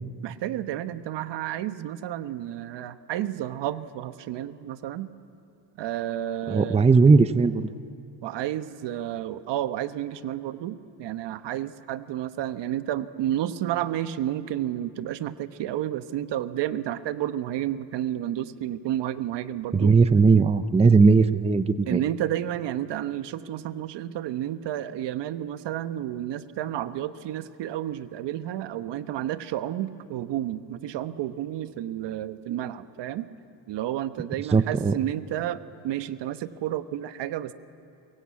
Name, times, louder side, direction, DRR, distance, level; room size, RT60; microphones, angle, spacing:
voice 1, 0.2-5.1 5.8-6.8 8.2-20.0 21.9-33.3 33.7-37.5, right 12 dB, 65° right, 12 dB, 1.2 m, -31 dB
voice 2, 6.5-7.7 19.7-22.0 34.5-34.9, right 4 dB, 15° right, 13 dB, 0.6 m, -18 dB
23.5 x 22.5 x 8.4 m, 2.6 s
cardioid pair, 105°, 45 cm